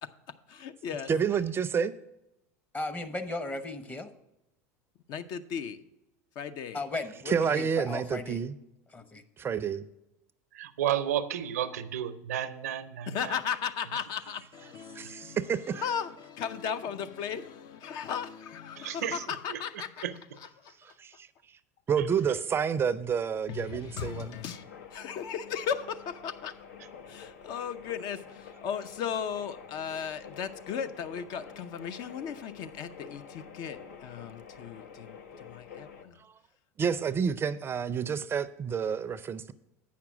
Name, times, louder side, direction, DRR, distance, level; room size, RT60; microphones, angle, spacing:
voice 1, 0.0-1.1 5.1-5.8 6.4-6.9 13.1-20.1 20.3-20.7 23.5-24.6 24.9-26.6 27.1-36.2, left 7 dB, 55° left, 10 dB, 0.6 m, -36 dB
voice 2, 1.1-1.9 7.3-8.5 9.4-9.9 14.9-15.8 20.8-21.3 21.9-24.4 36.2-36.3 36.8-39.5, right 7 dB, 30° right, 15 dB, 0.4 m, -29 dB
voice 3, 2.7-4.1 6.7-8.4 8.9-9.2, left 2 dB, 20° left, 9 dB, 0.8 m, -36 dB
voice 4, 10.5-13.3 14.9-15.0 18.8-19.2 19.5-19.6 20.0-20.1 22.0-22.1, right 10 dB, 85° right, 12 dB, 0.6 m, -32 dB
sound 1, 23.0-36.0, left 6 dB, 85° left, 0.8 m, -49 dB
8.3 x 5.9 x 6.1 m, 0.90 s
hypercardioid pair, 95°, 8 cm